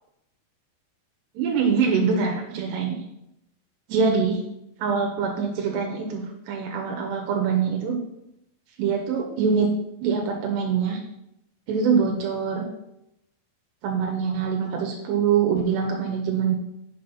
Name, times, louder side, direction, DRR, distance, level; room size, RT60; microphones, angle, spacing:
voice 1, 1.4-3.0 3.9-4.4 4.8-8.0 8.8-9.7 10.0-11.0 11.7-12.7 13.8-16.6, right 6 dB, 80° right, 1 dB, 3.1 m, -24 dB
7.5 x 6.1 x 5.6 m, 0.83 s
omnidirectional pair, 4.8 m